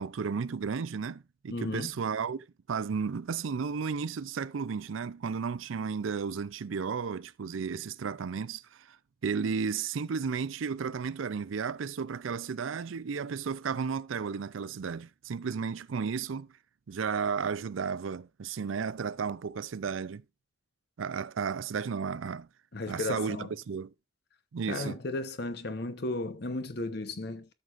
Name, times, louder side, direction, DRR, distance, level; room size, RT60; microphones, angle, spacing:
voice 1, 0.0-9.0 9.2-16.5 16.9-20.2 21.0-22.5 22.9-23.9 24.5-25.0, right 6 dB, 85° right, 0.5 m, -33 dB
voice 2, 1.5-1.9 22.7-23.5 24.7-27.5, left 2 dB, 55° left, 1.0 m, -34 dB
13.0 x 6.7 x 2.5 m
head